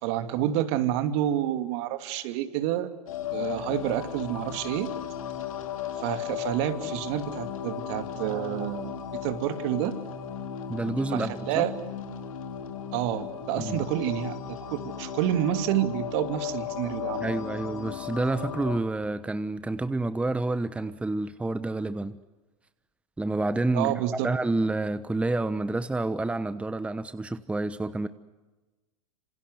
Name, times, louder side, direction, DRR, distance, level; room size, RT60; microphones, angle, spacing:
voice 1, 0.0-2.9 3.3-4.9 6.0-10.0 11.1-11.7 12.9-17.3 23.7-24.3, right 12 dB, 55° right, 2.8 m, -29 dB
sound 1, 3.1-18.8, left 9 dB, 75° left, 3.6 m, -36 dB
voice 2, 10.7-11.7 13.6-13.8 17.2-22.2 23.2-28.1, right 2 dB, 5° right, 1.0 m, -29 dB
27.0 x 27.0 x 8.1 m
hypercardioid pair, 105°, 18 cm